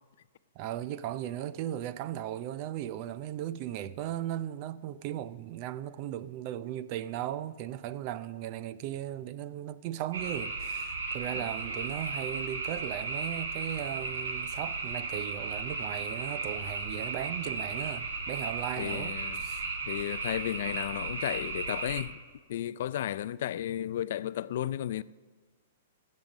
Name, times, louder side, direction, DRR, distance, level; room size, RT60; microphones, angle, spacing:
voice 1, 0.6-19.7, right 12 dB, 40° right, 0.5 m, -37 dB
sound 1, 10.1-22.0, right 3 dB, 90° right, 2.2 m, -35 dB
voice 2, 18.8-19.4 19.9-22.2 22.5-25.0, left 12 dB, 65° left, 0.3 m, -33 dB
15.0 x 7.4 x 6.3 m
hypercardioid pair, 140°, 0 cm